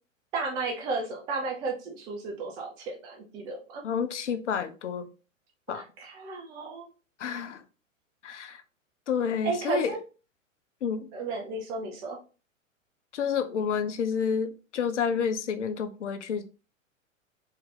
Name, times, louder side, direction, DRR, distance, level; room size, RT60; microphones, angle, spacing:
voice 1, 0.3-3.8 5.7-6.9 9.4-10.0 11.1-12.2, right 3 dB, 10° right, 0.4 m, -33 dB
voice 2, 3.8-5.1 5.7-5.8 7.2-7.6 8.2-8.6 9.1-10.0 10.8-11.1 13.1-16.5, left 7 dB, 60° left, 0.6 m, -29 dB
3.6 x 2.8 x 3.5 m
figure-of-eight pair, 105°, 40 cm